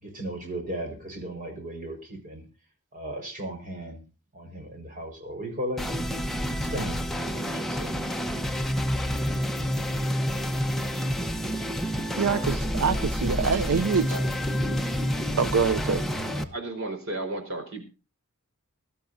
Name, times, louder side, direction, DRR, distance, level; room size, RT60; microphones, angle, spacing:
voice 1, 0.0-2.4 2.9-4.0 4.3-5.8 6.6-7.9, right 1 dB, 35° right, 4.8 m, -36 dB
sound 1, 5.8-16.4, equal, ahead, 1.0 m, -28 dB
voice 2, 12.2-14.2 15.4-16.1, right 5 dB, 80° right, 0.6 m, -25 dB
voice 3, 13.5-14.3 16.3-17.8, right 2 dB, 60° right, 4.5 m, -35 dB
21.5 x 13.0 x 2.7 m
head